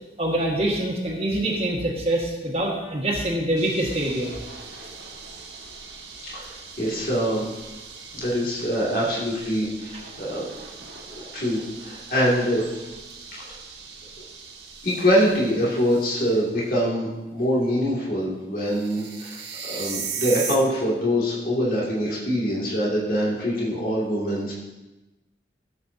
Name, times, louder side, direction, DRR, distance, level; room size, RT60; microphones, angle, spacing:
voice 1, 0.2-4.4, right 1 dB, 35° right, -2 dB, 1.7 m, -25 dB
sound 1, 3.6-16.6 18.7-20.6, right 5 dB, 75° right, 1.4 m, -39 dB
voice 2, 6.3-7.5 8.1-10.5 11.3-12.6 13.3-13.6 14.8-24.5, equal, 50° left, -6 dB, 2.4 m, -24 dB
13.5 x 7.8 x 2.8 m, 1.0 s
head